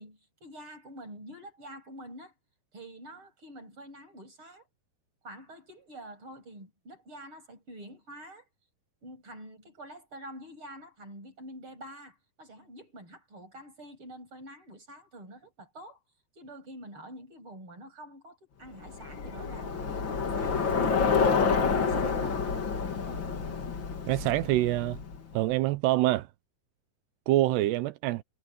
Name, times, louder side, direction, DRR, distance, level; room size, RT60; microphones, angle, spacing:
voice 1, 0.0-2.3 2.7-4.6 5.2-8.4 9.0-16.0 16.4-20.6 20.9-22.5, equal, 30° right, 7.8 m, -47 dB
Bicycle, 18.8-25.3, left 5 dB, 35° left, 2.3 m, -28 dB
voice 2, 24.1-25.0 25.3-26.3 27.3-28.2, right 16 dB, 90° right, 3.0 m, -25 dB
omnidirectional pair, 4.7 m